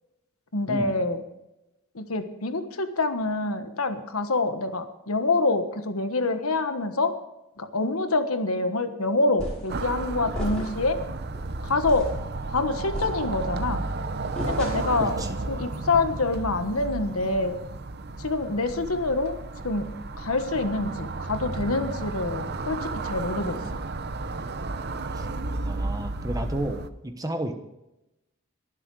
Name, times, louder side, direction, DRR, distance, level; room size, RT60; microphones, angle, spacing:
voice 1, 0.5-1.2 1.9-7.1 7.6-11.0 11.6-12.1 12.5-13.8 14.4-15.2 15.5-17.6 18.2-19.4 19.6-19.9 20.2-23.6, left 3 dB, 75° left, 8 dB, 1.3 m, -26 dB
sound 1, 9.4-9.8 10.3-10.9 11.3-11.5 11.9-12.2 12.9-13.6 14.4-15.1, equal, 5° left, 5.9 m, -34 dB
sound 2, 9.7-26.9, right 3 dB, 50° right, 0.7 m, -33 dB
voice 2, 15.0-15.4 25.1-25.3 25.6-27.5, right 1 dB, 15° right, 7 dB, 1.1 m, -32 dB
21.5 x 7.6 x 4.8 m, 0.93 s
head